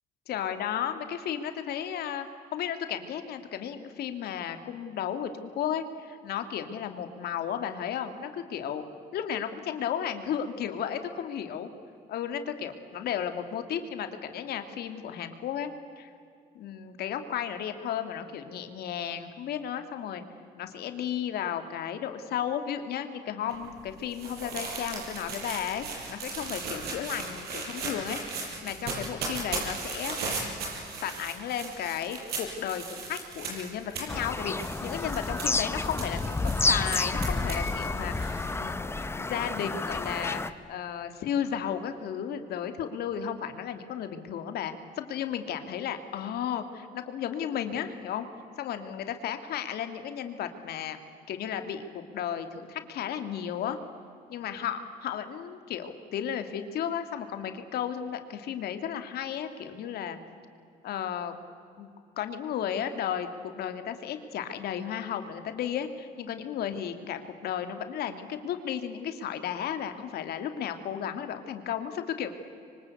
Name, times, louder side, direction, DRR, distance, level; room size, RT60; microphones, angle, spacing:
voice 1, 0.3-8.8 9.1-11.7 12.1-15.7 16.0-16.1 16.5-20.2 20.6-30.2 31.0-40.4 40.7-48.3 48.6-51.0 51.3-51.8 52.1-53.8 54.3-60.2 60.8-61.3 61.8-61.9 62.2-63.3 63.5-72.3, left 9 dB, 70° left, 8 dB, 2.5 m, -34 dB
sound 1, 23.5-38.5, right 4 dB, 70° right, 7.4 m, -37 dB
Bird vocalization bird call bird song, 34.1-40.5, left 3 dB, 15° left, 1.0 m, -30 dB
25.5 x 24.5 x 8.4 m, 2.4 s
cardioid pair, 110°, 17 cm